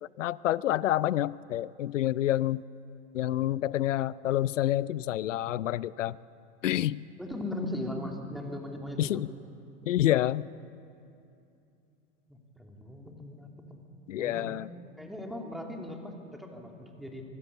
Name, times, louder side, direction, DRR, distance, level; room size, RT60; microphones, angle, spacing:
voice 1, 0.0-2.6 3.1-6.2 6.6-7.0 9.0-9.3 9.9-10.5 14.1-14.7, left 13 dB, 90° left, 21 dB, 0.5 m, -28 dB
voice 2, 7.2-9.2 12.3-13.8 14.2-14.5 15.0-17.2, left 1 dB, ahead, 1 dB, 2.9 m, -38 dB
24.0 x 13.0 x 8.3 m, 2.6 s
hypercardioid pair, 90°, 36 cm